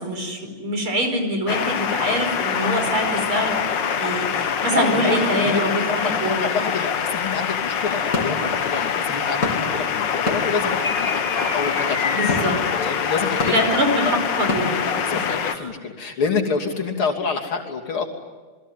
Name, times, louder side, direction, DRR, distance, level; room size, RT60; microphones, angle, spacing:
voice 1, 0.0-3.6 4.0-6.5 12.1-12.6 13.4-14.7 15.1-15.3 15.5-15.7, equal, 80° right, 5 dB, 5.8 m, -24 dB
sound 1, 1.5-15.6, left 7 dB, 60° left, 1.9 m, -24 dB
voice 2, 4.8-5.6 5.9-13.6 14.0-14.2 15.0-18.1, left 4 dB, 80° left, 2 dB, 4.0 m, -28 dB
sound 2, 7.6-7.7 8.1-15.2, left 3 dB, 40° left, 3.9 m, -29 dB
28.5 x 21.5 x 9.3 m, 1.3 s
omnidirectional pair, 2.3 m